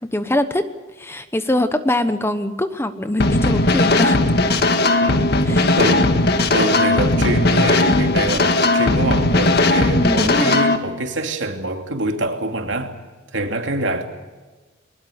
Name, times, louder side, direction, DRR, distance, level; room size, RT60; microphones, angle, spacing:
voice 1, 0.1-0.7 1.0-4.2 5.4-5.8 9.9-10.6, left 1 dB, 15° left, 1.0 m, -22 dB
sound 1, 3.2-10.8, left 2 dB, 55° left, 1.7 m, -17 dB
voice 2, 5.0-6.1 6.5-12.9 13.3-14.1, right 2 dB, 70° right, 2.8 m, -25 dB
22.0 x 20.5 x 8.6 m
head